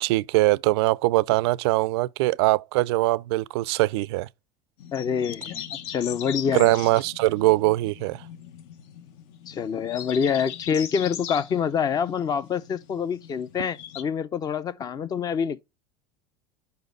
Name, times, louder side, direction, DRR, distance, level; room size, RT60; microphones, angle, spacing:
voice 1, 0.0-4.3 6.5-8.2, right 19 dB, 80° right, 0.4 m, -22 dB
sound 1, 4.8-14.0, left 10 dB, 65° left, 0.8 m, -40 dB
voice 2, 4.9-5.6 5.9-6.8 9.5-15.6, left 7 dB, 30° left, 0.5 m, -26 dB
5.2 x 4.0 x 5.1 m
supercardioid pair, 120°, 13 cm